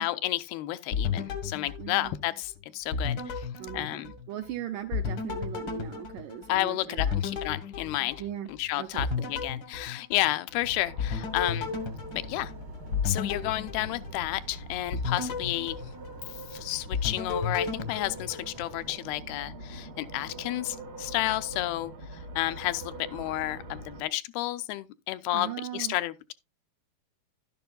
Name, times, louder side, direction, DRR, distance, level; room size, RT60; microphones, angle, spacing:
voice 1, 0.0-3.5 3.7-4.1 6.5-8.2 8.5-11.7 12.3-12.5 13.0-15.8 16.5-26.3, left 16 dB, 90° left, 2.6 m, -31 dB
sound 1, 0.9-2.5 2.9-4.5 4.9-8.6 9.0-10.6 11.0-14.5 14.9-16.5 16.9-18.9, left 5 dB, 70° left, 1.1 m, -33 dB
voice 2, 1.8-2.2 3.6-7.2 8.2-8.5 8.8-9.3 25.3-26.0, right 11 dB, 80° right, 1.9 m, -38 dB
sound 2, 10.6-24.0, right 1 dB, 60° right, 1.0 m, -43 dB
sound 3, 11.5-18.9, right 2 dB, 40° right, 0.6 m, -52 dB
11.5 x 10.5 x 2.3 m
omnidirectional pair, 4.3 m